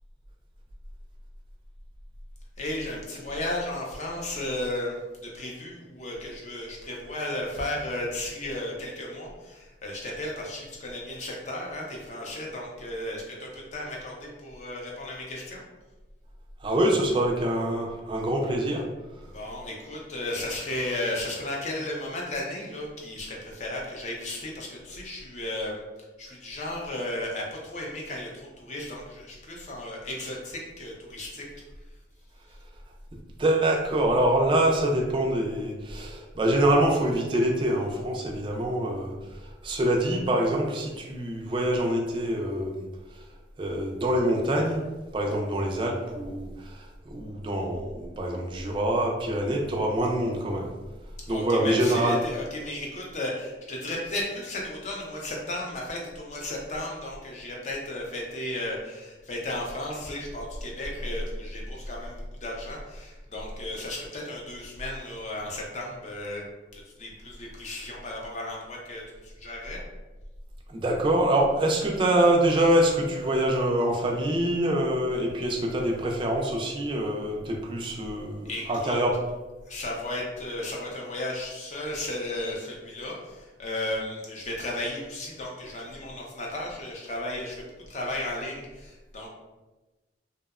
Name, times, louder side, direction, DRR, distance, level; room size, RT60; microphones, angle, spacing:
voice 1, 2.6-15.6 19.3-25.8 26.2-31.4 51.2-66.4 66.7-69.8 78.4-79.0 79.7-89.3, left 1 dB, 40° left, -2 dB, 0.5 m, -34 dB
voice 2, 16.6-18.9 33.4-39.1 39.6-42.8 43.6-44.8 45.1-50.7 51.3-52.2 70.7-79.1, right 1 dB, 25° right, 0 dB, 0.3 m, -25 dB
2.6 x 2.0 x 2.3 m, 1.2 s
head